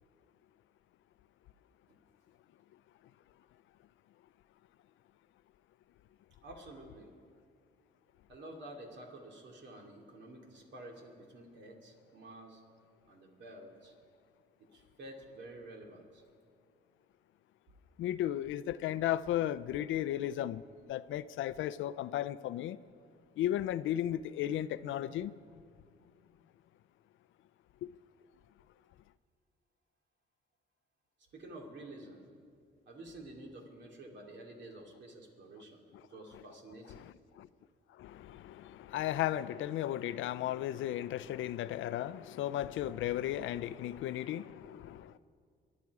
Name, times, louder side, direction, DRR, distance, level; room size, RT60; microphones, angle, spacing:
voice 1, 6.4-7.1 8.3-12.6 13.1-13.9 14.6-16.2 31.3-32.3 32.9-37.0, right 1 dB, 65° right, 2.8 m, -50 dB
voice 2, 18.0-20.6 20.9-22.8 23.4-25.4 27.8-27.9 36.3-36.4 36.9-37.5 38.0-45.2, left 12 dB, 80° left, 0.5 m, -35 dB
24.5 x 10.5 x 4.8 m
cardioid pair, 90°, 20 cm